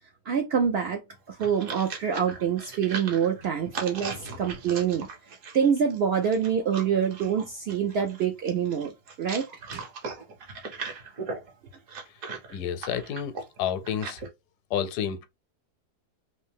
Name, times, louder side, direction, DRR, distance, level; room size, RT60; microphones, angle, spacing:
voice 1, 0.3-5.1 5.5-8.9 9.2-9.5 9.7-9.8, right 7 dB, 80° right, 0.5 m, -26 dB
sound 1, 1.1-14.3, right 4 dB, 60° right, 1.4 m, -39 dB
voice 2, 12.5-14.2 14.7-15.3, left 8 dB, 85° left, 1.2 m, -30 dB
3.2 x 2.7 x 3.4 m
omnidirectional pair, 1.7 m